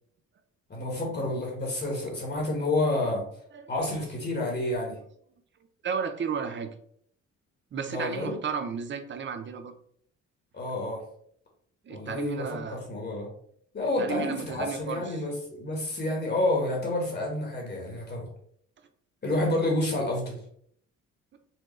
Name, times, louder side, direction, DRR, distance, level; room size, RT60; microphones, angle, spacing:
voice 1, 0.7-3.2 3.7-5.0 7.9-8.3 10.5-11.0 11.9-13.3 13.7-18.3 19.2-20.4, left 2 dB, 35° left, -1 dB, 1.3 m, -29 dB
voice 2, 3.5-4.0 5.8-6.7 7.7-9.7 11.8-12.8 13.8-15.2, right 6 dB, 40° right, 8 dB, 0.6 m, -34 dB
4.5 x 2.3 x 3.1 m, 0.63 s
cardioid pair, 90°, 30 cm